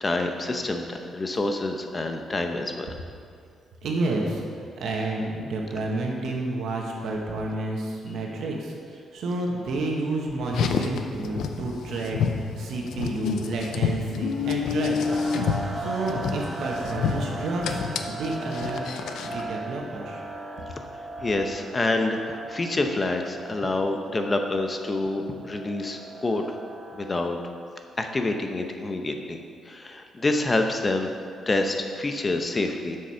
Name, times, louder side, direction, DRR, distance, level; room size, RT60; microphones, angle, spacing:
voice 1, 0.0-2.9 20.8-20.9 21.2-26.6 26.9-27.4 28.0-31.1 31.5-33.0, left 2 dB, 25° left, 4 dB, 0.9 m, -27 dB
voice 2, 3.8-12.2 12.6-20.2, right 2 dB, 75° right, -1 dB, 1.5 m, -30 dB
Car, 10.5-19.4, left 6 dB, 80° left, 0.6 m, -29 dB
sound 1, 15.0-27.4, right 2 dB, 25° right, 1.2 m, -37 dB
7.8 x 6.6 x 5.7 m, 2.2 s
cardioid pair, 95°, 0 cm